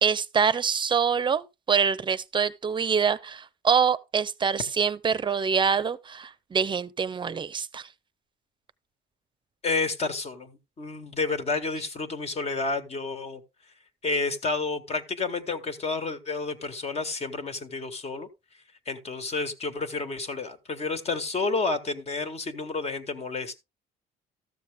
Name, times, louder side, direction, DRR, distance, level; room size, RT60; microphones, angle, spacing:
voice 1, 0.0-7.9, right 6 dB, 30° right, 0.7 m, -25 dB
voice 2, 9.6-13.4 14.0-18.3 18.9-23.6, left 3 dB, 40° left, 1.6 m, -30 dB
13.5 x 7.1 x 3.6 m
cardioid pair, 110°, 17 cm